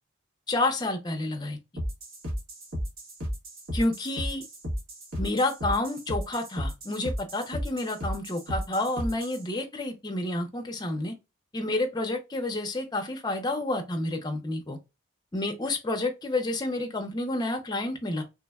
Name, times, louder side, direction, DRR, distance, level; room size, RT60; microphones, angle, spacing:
voice 1, 0.5-1.6 3.7-4.4 5.2-11.1 11.5-14.8 15.3-18.2, left 2 dB, 20° left, 0.5 m, -29 dB
sound 1, 1.8-9.4, equal, 75° right, 1.1 m, -34 dB
3.3 x 2.1 x 2.2 m
head